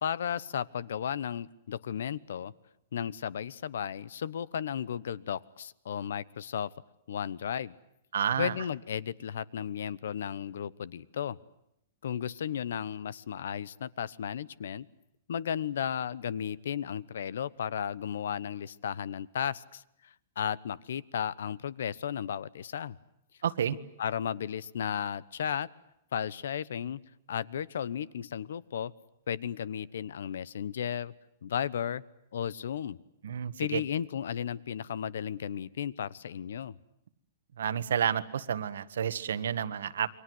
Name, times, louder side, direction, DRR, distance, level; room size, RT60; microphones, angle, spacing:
voice 1, 0.0-2.5 2.9-6.7 7.1-7.7 8.4-11.4 12.0-14.9 15.3-23.0 24.0-25.7 26.1-27.0 27.3-28.9 29.3-31.1 31.4-32.0 32.3-33.0 33.6-36.7, left 8 dB, 75° left, 21 dB, 1.0 m, -34 dB
voice 2, 8.1-8.5 23.4-23.7 33.2-33.8 37.6-40.1, right 8 dB, 85° right, 13 dB, 1.6 m, -30 dB
29.0 x 24.0 x 8.0 m, 0.79 s
supercardioid pair, 180°, 0 cm